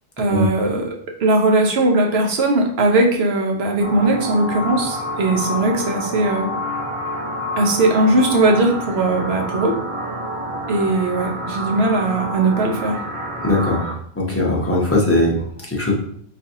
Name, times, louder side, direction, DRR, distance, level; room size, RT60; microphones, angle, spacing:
voice 1, 0.2-0.9 1.2-6.5 7.6-9.8 10.7-13.0, right 2 dB, 65° right, 2 dB, 0.9 m, -19 dB
sound 1, 3.8-13.9, equal, 40° right, 0.5 m, -28 dB
voice 2, 13.4-13.9 14.2-15.9, left 2 dB, 15° left, -3 dB, 0.7 m, -19 dB
4.0 x 3.4 x 2.7 m, 0.64 s
omnidirectional pair, 1.2 m